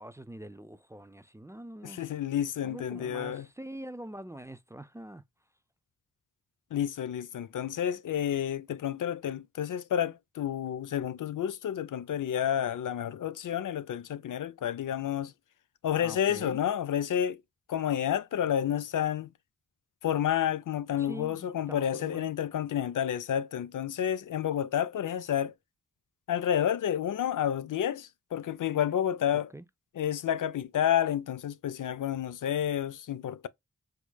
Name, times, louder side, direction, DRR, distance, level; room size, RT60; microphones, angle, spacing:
voice 1, 0.0-2.0 2.6-5.2 16.0-16.6 21.0-22.3 29.5-29.6, right 1 dB, 10° right, 0.4 m, -44 dB
voice 2, 1.8-3.5 6.7-15.3 15.8-17.4 17.7-19.3 20.0-25.5 26.3-29.5 30.0-33.5, left 10 dB, 80° left, 0.5 m, -30 dB
4.8 x 2.1 x 2.2 m
wide cardioid pair, 65°, 31 cm